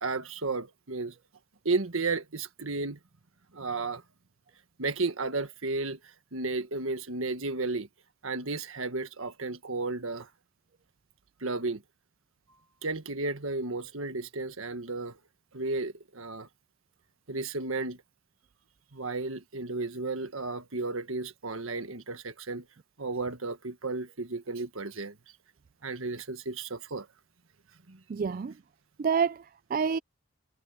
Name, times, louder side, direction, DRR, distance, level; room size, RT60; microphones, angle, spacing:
voice 1, 0.0-1.1 1.6-3.0 3.5-4.0 4.8-6.0 6.3-7.9 8.2-10.3 11.4-11.8 12.8-15.2 15.5-16.5 17.3-18.0 18.9-22.6 23.0-25.1 25.8-27.1 27.9-28.0, right 3 dB, 75° right, 1.6 m, -33 dB
voice 2, 28.1-28.5 29.0-30.0, right 6 dB, 40° right, 0.3 m, -28 dB
head